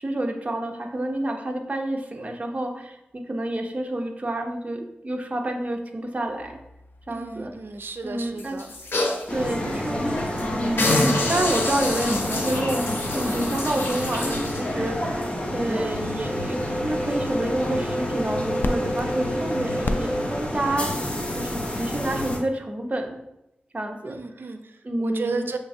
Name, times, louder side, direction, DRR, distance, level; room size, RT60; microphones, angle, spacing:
voice 1, 0.0-6.6 7.1-7.5 8.0-8.6 9.3-12.8 13.1-15.3 15.5-21.0 21.3-23.2 23.7-24.2 24.8-25.5, right 1 dB, 40° right, 3 dB, 0.7 m, -29 dB
sound 1, 6.3-20.7, left 2 dB, 65° left, 0.4 m, -40 dB
voice 2, 7.1-8.7 24.1-24.7 25.0-25.6, right 4 dB, 75° right, 7 dB, 0.4 m, -33 dB
sound 2, 8.4-9.3 9.7-9.8 10.2-10.4 10.8-14.7 15.2-15.3, left 2 dB, 85° left, 0.8 m, -27 dB
sound 3, 9.3-22.4, equal, 30° left, 0.9 m, -28 dB
6.0 x 3.2 x 2.7 m, 0.86 s
wide cardioid pair, 70°, 4 cm